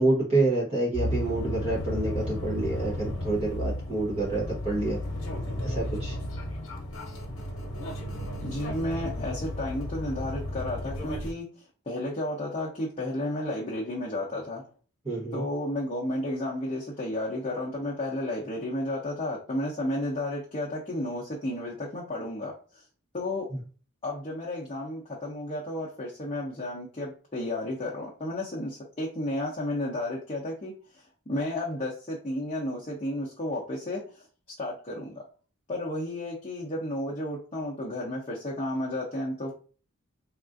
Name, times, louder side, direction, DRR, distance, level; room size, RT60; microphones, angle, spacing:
voice 1, 0.0-5.0 5.6-6.2 15.0-15.4, right 2 dB, 30° right, -5 dB, 0.8 m, -27 dB
sound 1, 0.9-11.3, left 1 dB, 65° left, 0.9 m, -33 dB
voice 2, 8.4-11.4 11.9-14.6 15.3-22.5 23.1-23.5 24.0-34.2 34.6-35.2 35.7-39.5, left 1 dB, 30° left, -5 dB, 0.7 m, -32 dB
3.6 x 2.4 x 2.5 m, 0.39 s
head